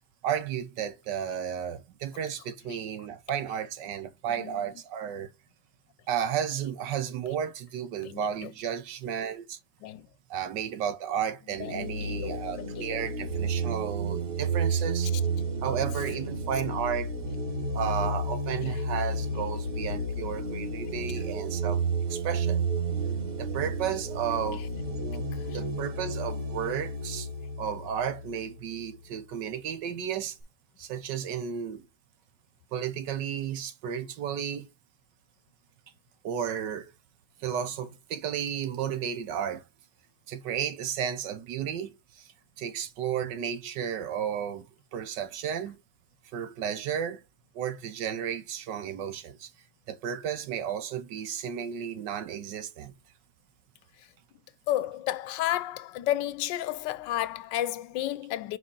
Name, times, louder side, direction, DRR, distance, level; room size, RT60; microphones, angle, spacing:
voice 1, 0.2-5.3 6.1-9.6 10.3-15.1 15.6-17.1 17.7-21.8 22.1-22.6 23.4-24.7 25.0-27.3 27.6-30.4 30.8-31.9 32.7-34.7 36.2-36.9 37.4-39.6 40.3-45.8 46.3-47.2 47.5-49.5 49.9-52.9, right 8 dB, 75° right, 1.4 m, -33 dB
voice 2, 8.0-8.5 9.8-10.1 11.6-13.0 25.4-25.6 54.7-58.6, left 13 dB, 80° left, 1.2 m, -32 dB
sound 1, 11.6-29.0, right 3 dB, 35° right, 1.2 m, -31 dB
4.6 x 4.2 x 5.3 m
omnidirectional pair, 2.0 m